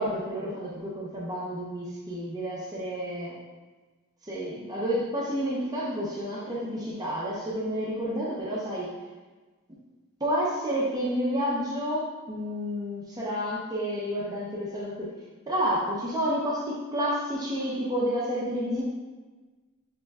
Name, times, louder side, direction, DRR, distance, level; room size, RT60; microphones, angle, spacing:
voice 1, 0.0-3.4 4.2-8.9 10.2-15.1 15.5-18.8, equal, 15° right, -6 dB, 0.7 m, -30 dB
6.7 x 3.1 x 2.3 m, 1.3 s
head